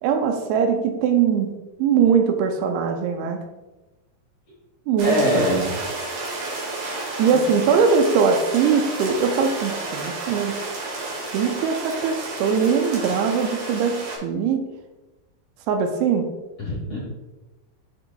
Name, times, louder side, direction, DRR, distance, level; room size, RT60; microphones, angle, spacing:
voice 1, 0.0-3.4 4.9-5.6 7.2-10.6 11.3-14.7 15.7-16.3, right 6 dB, 85° right, 5 dB, 2.5 m, -21 dB
voice 2, 5.0-5.7 7.3-7.4 16.6-17.0, left 1 dB, 55° left, -6 dB, 1.7 m, -23 dB
sound 1, 5.0-14.2, right 2 dB, 60° right, 3.1 m, -31 dB
8.6 x 5.9 x 2.3 m, 1.1 s
omnidirectional pair, 4.8 m